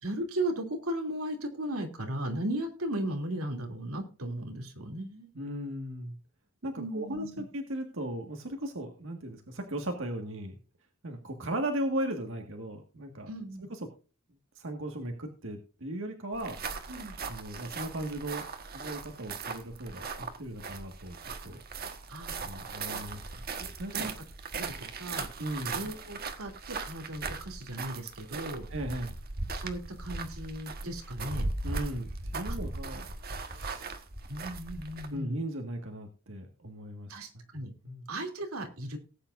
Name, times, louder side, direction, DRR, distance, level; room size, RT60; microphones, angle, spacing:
voice 1, 0.0-5.3 6.8-7.4 13.3-13.7 16.9-17.2 22.1-22.3 22.9-23.2 23.9-24.1 24.5-25.3 25.7-28.6 29.6-31.5 32.5-32.6 34.3-35.4 37.1-37.7 38.1-39.0, right 1 dB, 90° right, 3 dB, 2.9 m, -36 dB
voice 2, 5.3-6.1 6.6-10.6 11.0-13.3 13.6-13.9 14.5-16.6 16.9-18.4 18.7-21.2 21.4-21.6 22.4-23.2 23.6-24.1 25.4-25.8 28.7-29.2 31.6-33.1 33.5-34.0 35.1-37.2 37.8-38.1, right 1 dB, 65° right, 4 dB, 1.8 m, -37 dB
sound 1, 16.3-35.2, right 3 dB, 45° right, 1.4 m, -38 dB
18.5 x 8.9 x 2.6 m, 0.34 s
head